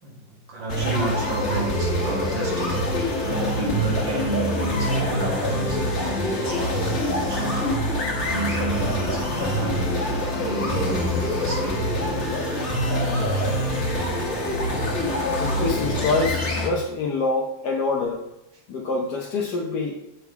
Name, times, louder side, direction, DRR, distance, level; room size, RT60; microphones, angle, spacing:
voice 1, 0.0-2.8 3.2-7.9 8.2-9.9 10.4-11.8, right 2 dB, 70° right, -3 dB, 2.4 m, -31 dB
sound 1, 0.7-16.7, left 1 dB, 40° left, 1.6 m, -25 dB
voice 2, 15.2-18.2 18.7-20.0, left 3 dB, 65° left, -1 dB, 1.2 m, -26 dB
7.0 x 3.8 x 4.5 m, 0.90 s
omnidirectional pair, 2.0 m